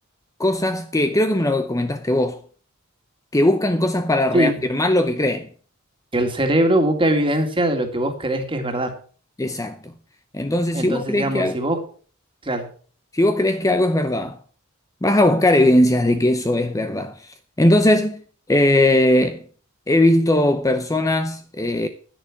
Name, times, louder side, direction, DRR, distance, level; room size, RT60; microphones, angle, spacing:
voice 1, 0.4-2.4 3.3-5.5 9.4-9.9 10.3-11.6 13.1-14.4 15.0-18.2 18.5-19.4 19.9-21.9, left 1 dB, 15° left, 0.7 m, -19 dB
voice 2, 6.1-8.9 10.7-11.8 12.4-12.7, right 1 dB, 25° right, 2.2 m, -21 dB
10.0 x 9.9 x 6.0 m
head